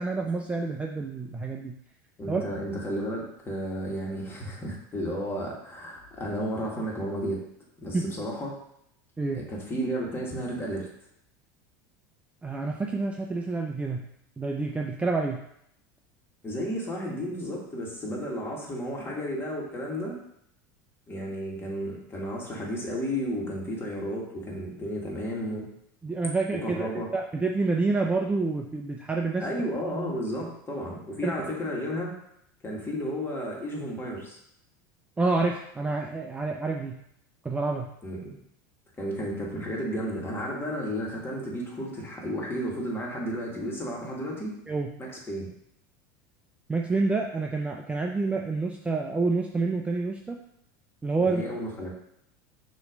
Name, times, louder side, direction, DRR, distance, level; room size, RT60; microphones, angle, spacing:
voice 1, 0.0-1.8 2.3-2.4 7.9-8.1 9.2-9.4 12.4-14.1 14.4-15.4 26.0-29.5 31.2-31.3 35.2-37.0 37.4-37.9 44.7-44.9 46.7-50.4 51.0-51.4, right 3 dB, 10° right, 1 dB, 0.5 m, -28 dB
voice 2, 2.2-7.4 7.8-8.6 9.3-10.9 16.4-20.2 21.1-25.6 26.5-27.1 29.4-32.1 32.6-34.4 38.0-38.4 39.0-44.5 45.0-45.5 51.2-51.9, equal, 20° left, -2 dB, 2.0 m, -33 dB
6.4 x 3.1 x 5.2 m, 0.75 s
supercardioid pair, 110°, 10 cm